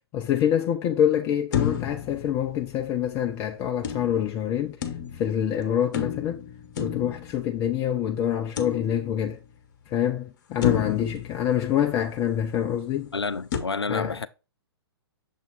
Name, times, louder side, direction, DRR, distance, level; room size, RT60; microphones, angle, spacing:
voice 1, 0.1-4.8 5.1-6.4 6.8-9.4 9.9-13.1 13.9-14.2, left 10 dB, 20° left, 0.4 m, -26 dB
sound 1, 1.5-3.1 3.8-5.5 5.9-7.9 8.6-9.4 9.9-10.0 10.6-12.3 13.5-13.6, left 8 dB, 45° left, 1.1 m, -31 dB
voice 2, 13.1-14.3, left 4 dB, 80° left, 0.5 m, -29 dB
7.0 x 3.5 x 3.9 m
figure-of-eight pair, 120°, 14 cm